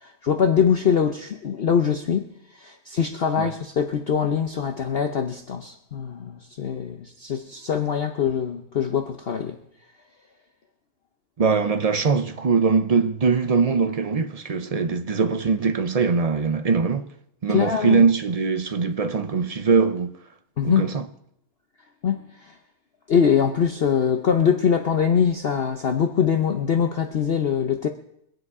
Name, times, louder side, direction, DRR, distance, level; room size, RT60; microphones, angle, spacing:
voice 1, 0.0-2.3 2.5-9.6 17.5-18.1 20.6-20.9 22.0-22.5 23.1-27.9, left 7 dB, 50° left, 0.9 m, -23 dB
voice 2, 11.4-17.1 17.4-20.1 20.6-21.1, right 5 dB, 55° right, 0.4 m, -22 dB
24.0 x 7.9 x 4.8 m
omnidirectional pair, 1.6 m